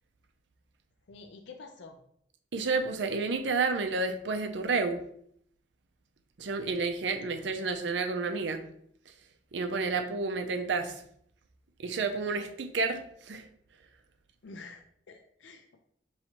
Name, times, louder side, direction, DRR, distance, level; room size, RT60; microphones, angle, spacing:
voice 1, 1.1-2.0 14.4-15.8, left 3 dB, 80° left, 5 dB, 0.5 m, -48 dB
voice 2, 2.5-5.0 6.4-8.6 9.5-11.0 11.8-13.4, right 4 dB, 80° right, 6 dB, 0.5 m, -30 dB
5.6 x 3.1 x 2.9 m, 0.68 s
head